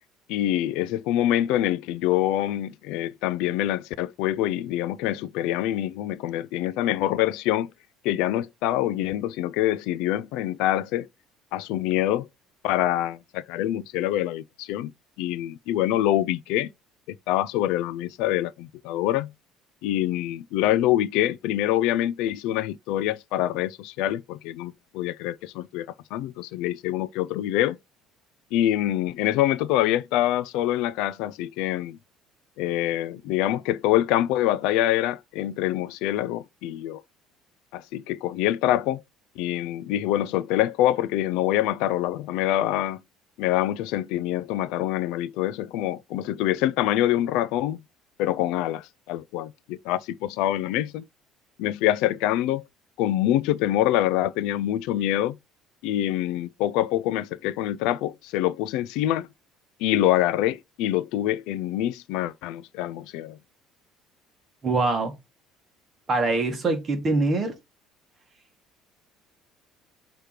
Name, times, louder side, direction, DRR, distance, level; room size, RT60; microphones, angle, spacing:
voice 1, 0.3-7.7 8.0-11.1 11.5-12.3 12.6-14.9 15.2-16.7 17.3-19.3 19.8-27.8 28.5-32.0 32.6-37.0 37.7-39.0 39.4-43.0 43.4-47.8 48.2-51.1 51.6-52.6 53.0-55.4 55.8-59.3 59.8-63.4, left 13 dB, 75° left, 0.4 m, -25 dB
voice 2, 64.6-65.1 66.1-67.5, right 3 dB, 25° right, 1.6 m, -23 dB
6.5 x 3.0 x 4.9 m
cardioid pair, 170°, 0 cm